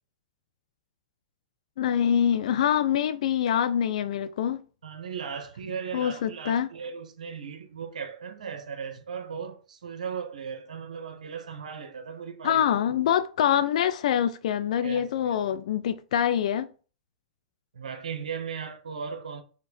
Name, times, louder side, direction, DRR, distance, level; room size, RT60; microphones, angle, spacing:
voice 1, 1.8-4.6 5.9-6.7 12.4-16.7, left 9 dB, 65° left, 0.3 m, -25 dB
voice 2, 4.8-12.7 14.8-15.4 17.7-19.4, right 6 dB, 80° right, 0.7 m, -37 dB
4.2 x 2.9 x 4.0 m
hypercardioid pair, 115°, 4 cm